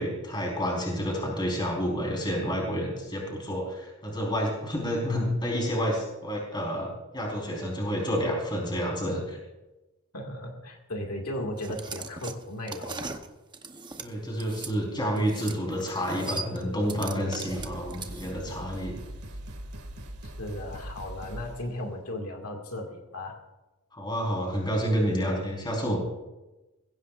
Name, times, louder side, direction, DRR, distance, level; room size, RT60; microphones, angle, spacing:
voice 1, 0.0-9.4 14.0-18.9 23.9-26.0, equal, 20° left, -1 dB, 4.4 m, -29 dB
voice 2, 10.1-13.2 20.2-23.4, left 1 dB, 80° left, 2 dB, 2.1 m, -36 dB
sound 1, 11.6-14.7 15.2-15.6 15.9-18.5, right 3 dB, 20° right, 0.9 m, -39 dB
sound 2, 15.7-16.3 17.1-17.2 17.5-21.7, right 1 dB, 80° right, 2.2 m, -41 dB
21.5 x 16.0 x 2.5 m, 1.1 s
head